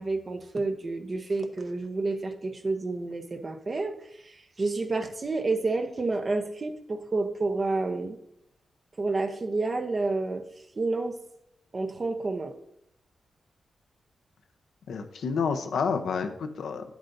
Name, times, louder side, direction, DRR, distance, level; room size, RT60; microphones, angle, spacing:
voice 1, 0.0-8.2 9.0-10.4 10.8-11.1 11.7-12.5, right 3 dB, 35° right, 7 dB, 0.8 m, -29 dB
voice 2, 14.9-16.9, left 5 dB, 85° left, 7 dB, 0.8 m, -29 dB
10.0 x 8.1 x 2.6 m, 0.78 s
cardioid pair, 100°, 0 cm